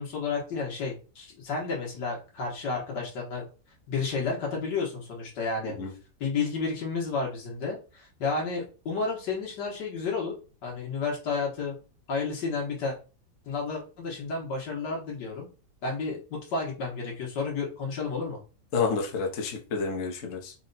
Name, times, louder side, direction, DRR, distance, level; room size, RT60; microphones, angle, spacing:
voice 1, 0.0-3.4 3.9-5.8 6.2-10.3 10.6-11.8 12.1-13.0 13.5-15.5 15.8-18.4, left 4 dB, 85° left, 1.8 m, -31 dB
voice 2, 18.7-20.5, left 5 dB, 55° left, 1.1 m, -29 dB
4.3 x 2.2 x 3.9 m
omnidirectional pair, 1.8 m